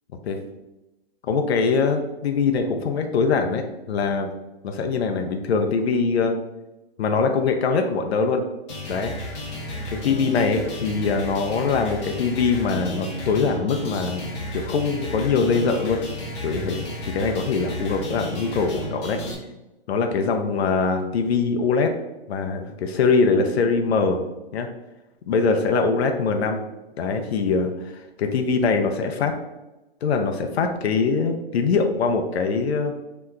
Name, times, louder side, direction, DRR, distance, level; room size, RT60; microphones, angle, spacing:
voice 1, 1.3-4.3 4.6-6.4 7.0-8.4 8.9-9.1 9.9-14.2 14.5-16.0 16.4-16.8 17.1-19.2 19.9-21.9 22.3-24.2 24.5-24.7 25.3-26.6 27.0-29.3 30.0-32.9, left 4 dB, 90° left, 5 dB, 0.5 m, -22 dB
sound 1, 8.7-19.3, left 1 dB, 30° left, 0.6 m, -33 dB
2.9 x 2.2 x 3.5 m, 1.0 s
hypercardioid pair, 160°, 31 cm